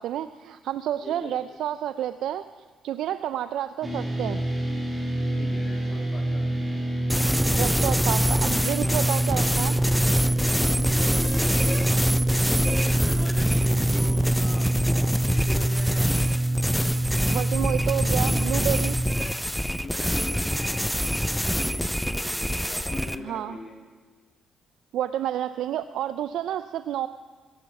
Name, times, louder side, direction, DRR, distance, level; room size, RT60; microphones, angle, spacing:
voice 1, 0.0-2.4 2.8-4.4 7.5-9.8 17.3-19.0 23.2-23.6 24.9-27.1, right 11 dB, 80° right, 12 dB, 0.4 m, -29 dB
voice 2, 1.0-1.4 5.3-6.9 10.2-11.8 12.6-14.7 15.2-16.1 18.2-18.7 19.5-20.9 21.3-23.8, left 3 dB, 35° left, 1 dB, 2.6 m, -41 dB
sound 1, 3.8-19.1, right 1 dB, 15° right, 3.4 m, -25 dB
sound 2, 7.1-23.2, equal, ahead, 0.4 m, -26 dB
17.5 x 11.5 x 5.9 m, 1.4 s
cardioid pair, 90°, 0 cm